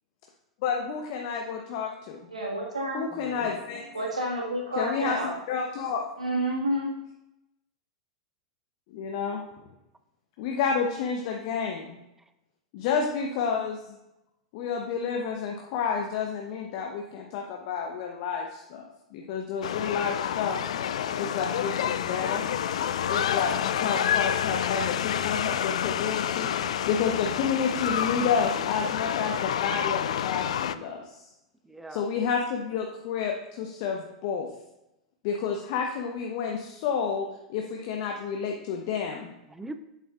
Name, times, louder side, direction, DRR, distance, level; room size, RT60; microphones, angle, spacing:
voice 1, 0.6-2.2 2.9-3.9 4.8-6.1 8.9-9.4 10.4-12.0 12.7-14.0 14.5-20.6 21.1-22.5 23.1-26.5 26.9-31.2 31.9-34.5 35.2-39.3, left 6 dB, 50° left, 1 dB, 0.8 m, -30 dB
voice 2, 2.3-3.0 3.9-5.3 6.2-6.9, right 1 dB, 85° right, -3 dB, 1.7 m, -29 dB
voice 3, 3.1-3.7 31.6-32.1 39.5-39.8, right 2 dB, 5° right, 9 dB, 0.5 m, -43 dB
sound 1, 19.6-30.8, left 9 dB, 70° left, 0.3 m, -28 dB
8.2 x 7.2 x 2.4 m, 0.90 s
figure-of-eight pair, 95°, 4 cm